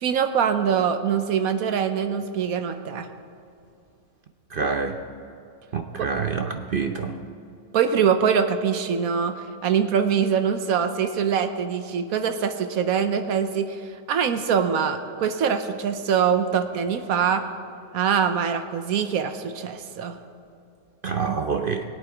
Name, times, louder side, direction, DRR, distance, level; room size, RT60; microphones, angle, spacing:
voice 1, 0.0-3.1 6.0-6.1 7.7-13.8 14.1-17.4 17.9-20.2, right 7 dB, 65° right, 8 dB, 1.2 m, -23 dB
voice 2, 4.5-5.0 5.7-7.1 21.0-21.8, right 5 dB, 50° right, 5 dB, 0.7 m, -26 dB
22.0 x 8.1 x 4.6 m, 2.5 s
omnidirectional pair, 1.7 m